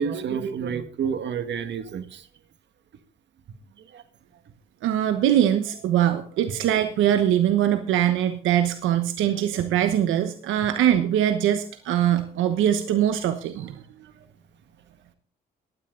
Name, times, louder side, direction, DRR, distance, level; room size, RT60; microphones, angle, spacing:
voice 1, 0.0-2.2 3.9-4.0, right 7 dB, 65° right, 10 dB, 1.7 m, -29 dB
voice 2, 4.8-13.8, right 10 dB, 90° right, 9 dB, 1.1 m, -22 dB
16.0 x 11.5 x 3.9 m, 0.41 s
cardioid pair, 90°, 20 cm